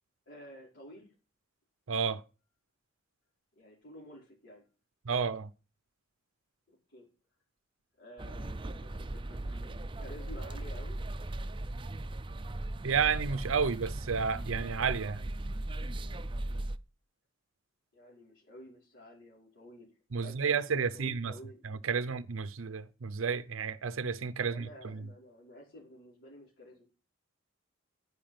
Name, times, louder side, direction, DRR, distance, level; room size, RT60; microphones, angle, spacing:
voice 1, 0.3-1.1 3.6-4.7 6.7-7.1 8.0-11.0 17.9-19.9 20.2-21.6 24.4-26.8, equal, 65° left, 5.2 m, -51 dB
voice 2, 1.9-2.2 5.1-5.5 12.8-15.2 20.1-21.3 21.6-25.0, right 6 dB, 85° right, 0.6 m, -31 dB
sound 1, 8.2-16.8, right 1 dB, 25° right, 0.6 m, -38 dB
10.0 x 9.7 x 5.8 m
head